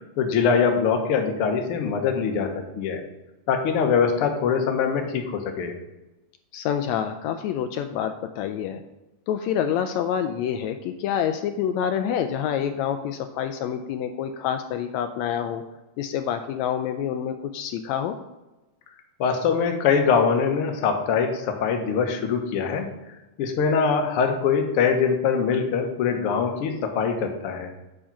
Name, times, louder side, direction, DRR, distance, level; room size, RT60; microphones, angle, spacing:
voice 1, 0.2-3.0 3.5-5.7 19.2-22.9 23.4-27.7, left 6 dB, 65° left, 4 dB, 1.5 m, -23 dB
voice 2, 6.5-8.8 9.3-15.6 16.0-18.2, left 9 dB, 90° left, 7 dB, 1.6 m, -27 dB
8.8 x 5.0 x 5.9 m, 1.0 s
omnidirectional pair, 3.7 m